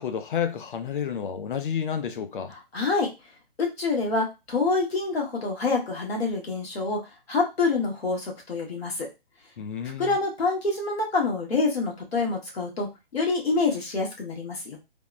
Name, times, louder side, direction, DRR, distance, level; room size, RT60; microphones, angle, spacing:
voice 1, 0.0-2.5 9.6-10.2, left 8 dB, 60° left, 0.5 m, -30 dB
voice 2, 2.5-3.1 3.6-7.0 7.3-9.1 10.0-14.8, left 3 dB, 85° left, 1.4 m, -26 dB
3.3 x 2.1 x 2.5 m
hypercardioid pair, 160°, 30 cm